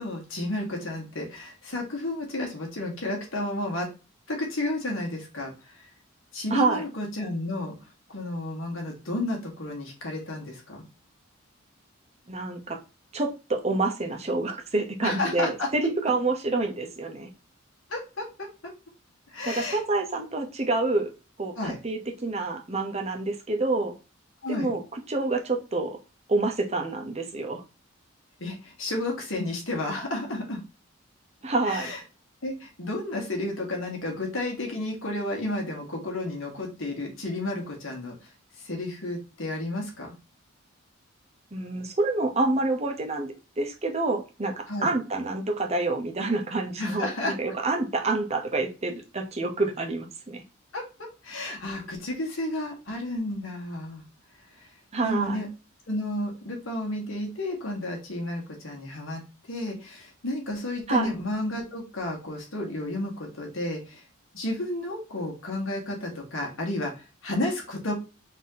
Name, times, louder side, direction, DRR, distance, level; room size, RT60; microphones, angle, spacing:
voice 1, 0.0-3.9 4.3-5.9 6.3-7.8 8.1-10.8 15.0-15.7 17.9-18.5 19.3-19.8 21.6-21.8 24.4-24.7 28.4-30.6 31.6-32.0 32.4-38.2 38.6-40.1 44.7-44.9 46.8-47.3 50.7-54.0 54.6-54.7 55.0-55.5 55.9-64.0 64.3-67.9, left 1 dB, 75° left, 0 dB, 1.8 m, -32 dB
voice 2, 6.5-6.8 12.3-12.8 13.1-17.3 19.5-21.1 21.4-23.9 24.5-26.0 26.3-27.6 31.4-31.9 41.5-50.4 54.9-55.4 60.9-61.1, right 2 dB, 30° right, 3 dB, 0.8 m, -27 dB
4.2 x 2.9 x 3.7 m, 0.31 s
head